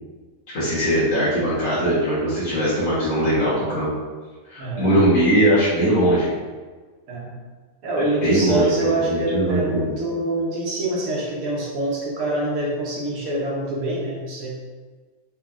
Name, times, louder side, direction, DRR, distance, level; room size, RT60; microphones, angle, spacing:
voice 1, 0.5-3.9 4.5-6.3 8.2-8.7 9.0-9.9, right 1 dB, 75° left, -10 dB, 1.6 m, -20 dB
voice 2, 4.6-5.0 7.1-7.3 7.8-14.5, right 2 dB, 90° right, -4 dB, 1.3 m, -25 dB
4.1 x 3.0 x 2.4 m, 1.4 s
omnidirectional pair, 1.4 m